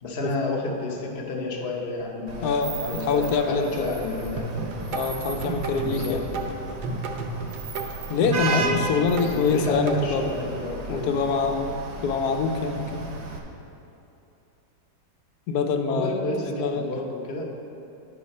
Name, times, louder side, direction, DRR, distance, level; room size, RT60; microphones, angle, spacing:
voice 1, 0.0-4.5 5.8-6.5 9.1-11.1 15.8-17.4, left 2 dB, 45° left, -1 dB, 0.8 m, -31 dB
Vehicle horn car horn honking / Traffic noise roadway noise, 2.3-13.4, right 3 dB, 50° right, 0.9 m, -34 dB
voice 2, 2.4-3.9 4.9-6.3 8.1-10.3 10.9-11.8 12.0-13.0 15.5-16.2 16.6-16.9, left 5 dB, 70° left, 6 dB, 1.1 m, -25 dB
sound 1, 4.4-10.0, right 4 dB, 70° right, 1.3 m, -32 dB
10.5 x 4.9 x 5.3 m, 2.8 s
omnidirectional pair, 1.9 m